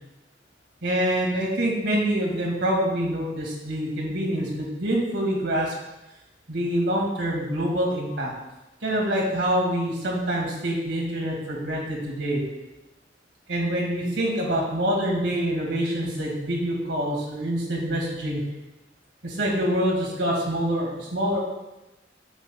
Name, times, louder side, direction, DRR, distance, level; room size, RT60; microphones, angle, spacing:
voice 1, 0.8-5.7 6.5-8.3 8.8-12.4 13.5-18.4 19.2-21.4, right 1 dB, 80° right, -1 dB, 2.1 m, -26 dB
8.7 x 7.6 x 2.3 m, 0.98 s
head